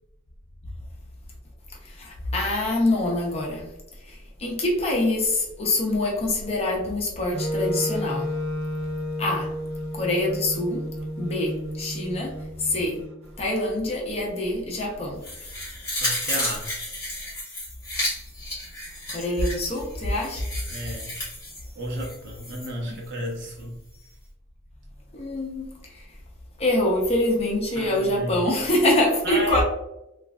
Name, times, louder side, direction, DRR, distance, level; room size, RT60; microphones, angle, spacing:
voice 1, 1.8-3.7 4.1-8.3 9.2-9.5 9.9-10.9 11.2-13.0 13.4-15.2 19.1-20.5 22.9-23.0 25.1-26.1 26.6-29.6, left 1 dB, 30° left, -2 dB, 0.6 m, -25 dB
Wind instrument woodwind instrument, 7.3-13.4, equal, 80° right, 0.4 m, -31 dB
sound 1, 15.2-22.7 23.1-23.2, left 1 dB, 15° left, 1.3 m, -32 dB
voice 2, 16.0-16.7 20.7-21.2 21.8-23.8 27.8-28.5 29.2-29.6, right 1 dB, 55° right, -2 dB, 0.7 m, -32 dB
3.1 x 2.4 x 2.2 m, 0.91 s
head